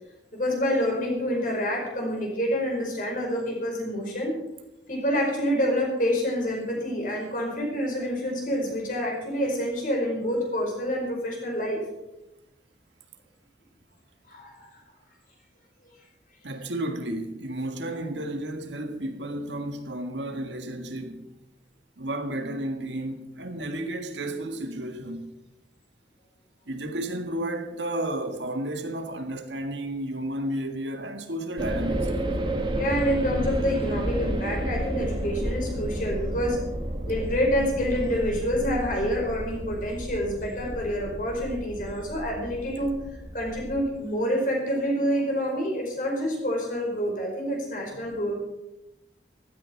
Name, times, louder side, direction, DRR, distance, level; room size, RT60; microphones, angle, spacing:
voice 1, 0.3-4.4 4.9-11.8 14.3-14.7 32.7-36.6 37.1-43.0 43.3-48.4, equal, 50° left, 5.1 m, -27 dB
voice 2, 16.4-21.3 22.0-25.3 26.7-32.1 47.8-48.1, right 1 dB, 90° right, 1.7 m, -32 dB
sound 1, 31.6-43.9, right 1 dB, 25° right, 1.8 m, -31 dB
15.0 x 13.5 x 4.6 m
head